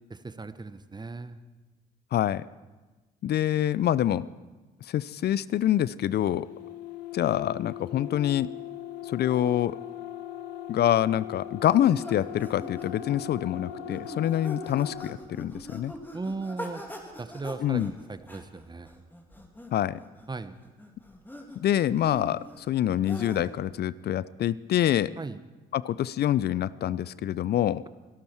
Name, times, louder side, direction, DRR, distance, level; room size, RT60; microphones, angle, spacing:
voice 1, 0.1-1.4 16.1-16.8 17.2-18.9 20.3-20.6 25.2-25.4, right 3 dB, 20° right, 12 dB, 1.1 m, -37 dB
voice 2, 2.1-2.4 3.2-4.3 4.9-6.5 7.1-8.5 9.1-9.8 10.7-15.9 17.6-17.9 19.7-20.0 21.6-25.1 25.7-27.8, left 11 dB, 55° left, 19 dB, 0.5 m, -26 dB
sound 1, 6.1-15.2, left 11 dB, 90° left, 0.9 m, -40 dB
sound 2, 11.6-23.7, left 1 dB, 10° left, 3.0 m, -43 dB
24.0 x 12.5 x 4.6 m, 1.2 s
hypercardioid pair, 50°, 20 cm